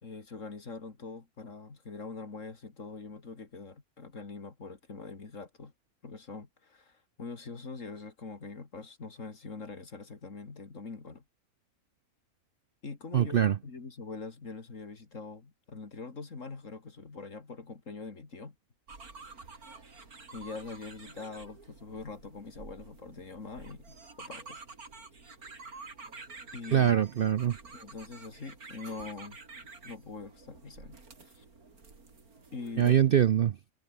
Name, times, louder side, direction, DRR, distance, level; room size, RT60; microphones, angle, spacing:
voice 1, 0.0-5.7 6.0-11.2 12.8-18.6 20.3-24.6 25.2-25.3 26.5-26.9 27.7-29.4 29.8-31.0 31.2-31.5 32.5-33.0, left 4 dB, 60° left, 2.9 m, -43 dB
voice 2, 13.1-13.6 26.7-27.6 32.8-33.6, right 9 dB, 65° right, 0.5 m, -23 dB
sound 1, 18.9-33.0, right 4 dB, 85° right, 3.8 m, -50 dB
omnidirectional pair, 1.5 m